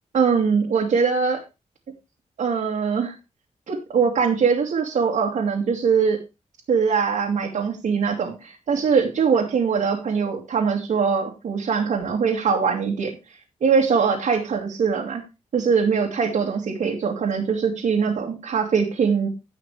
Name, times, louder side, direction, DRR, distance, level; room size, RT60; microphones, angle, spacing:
voice 1, 0.1-1.4 2.4-3.1 3.7-6.2 6.7-13.1 13.6-15.2 15.5-19.3, right 6 dB, 75° right, -2 dB, 2.3 m, -22 dB
17.0 x 5.8 x 3.3 m, 0.26 s
wide cardioid pair, 140°, 13 cm